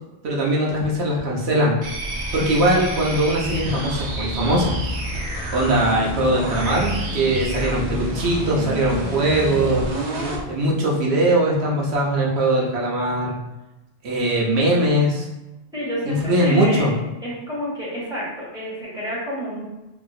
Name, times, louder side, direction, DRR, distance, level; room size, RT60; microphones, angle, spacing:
voice 1, 0.2-1.7 2.3-4.7 5.5-9.9 10.5-13.3 14.0-15.3 16.1-16.9, right 1 dB, 85° right, -3 dB, 1.0 m, -20 dB
sound 1, 1.8-10.5, right 1 dB, 50° right, 0.6 m, -28 dB
voice 2, 15.7-16.9 17.2-19.6, equal, 5° right, -8 dB, 1.1 m, -29 dB
2.9 x 2.6 x 2.3 m, 1.0 s
omnidirectional pair, 1.1 m